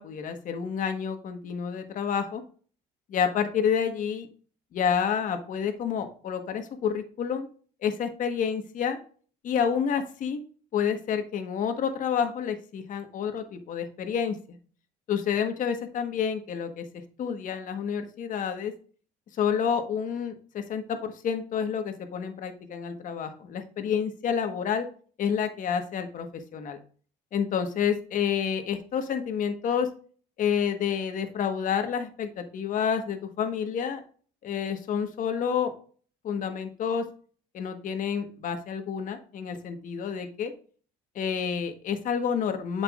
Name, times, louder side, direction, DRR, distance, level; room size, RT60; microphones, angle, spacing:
voice 1, 0.0-2.4 3.1-4.3 4.7-7.5 7.8-9.0 9.4-10.4 10.7-14.6 15.1-18.7 19.4-24.9 25.2-26.8 27.3-29.9 30.4-34.0 34.4-35.7 36.2-37.0 37.5-40.5 41.1-42.8, left 7 dB, 55° left, 7 dB, 1.4 m, -29 dB
8.1 x 6.0 x 2.5 m, 0.42 s
cardioid pair, 100°, 16 cm